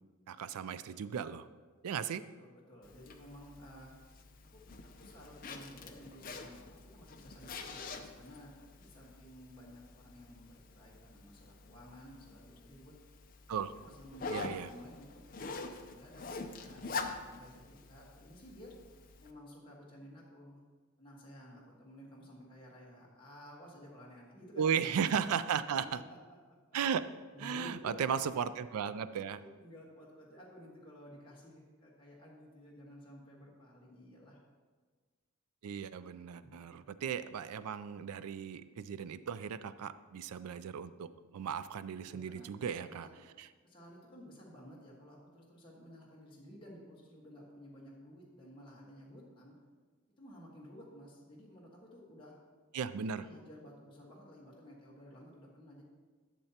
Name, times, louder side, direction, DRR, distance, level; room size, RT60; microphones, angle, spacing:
voice 1, 0.3-1.5 1.8-2.2 13.5-13.7 14.3-14.7 24.6-26.0 26.7-27.0 27.4-29.4 35.6-43.1 43.4-43.5 52.7-53.2, right 7 dB, 85° right, 13 dB, 0.4 m, -36 dB
voice 2, 2.4-3.9 4.5-12.9 13.8-15.2 15.5-16.8 17.2-18.7 19.2-20.6 21.0-24.9 25.3-26.2 27.3-28.1 29.2-34.4 36.6-36.8 42.0-43.1 43.6-49.5 50.2-52.3 53.0-55.8, equal, 20° left, -5 dB, 1.4 m, -54 dB
Zipper (clothing), 2.8-19.3, left 4 dB, 40° left, 0.5 m, -46 dB
12.0 x 6.9 x 2.8 m, 1.4 s
head